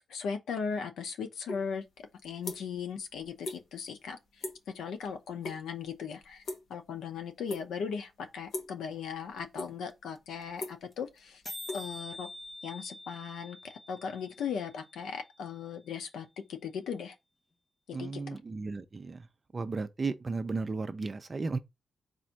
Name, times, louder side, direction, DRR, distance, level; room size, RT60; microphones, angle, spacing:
voice 1, 0.0-4.5 4.7-6.4 6.7-11.4 11.7-12.3 12.6-17.2 17.9-18.4, left 6 dB, 85° left, 0.7 m, -38 dB
sound 1, 1.5-1.6 2.0-2.9 3.1-3.6 3.9-4.1 4.4-4.7 5.0-5.6 5.8-7.0 7.5-7.9 8.5-8.8 9.3-9.9 10.3-12.5, left 2 dB, 55° left, 1.1 m, -40 dB
sound 2, 9.4-9.5 9.6-9.7 9.9-10.2 10.4-10.5 10.7-10.9 11.2-11.3 11.4-15.4, left 1 dB, 15° left, 0.7 m, -46 dB
voice 2, 17.9-19.3 19.5-21.6, right 3 dB, 25° right, 0.4 m, -34 dB
4.1 x 2.6 x 4.4 m
wide cardioid pair, 165°, 0 cm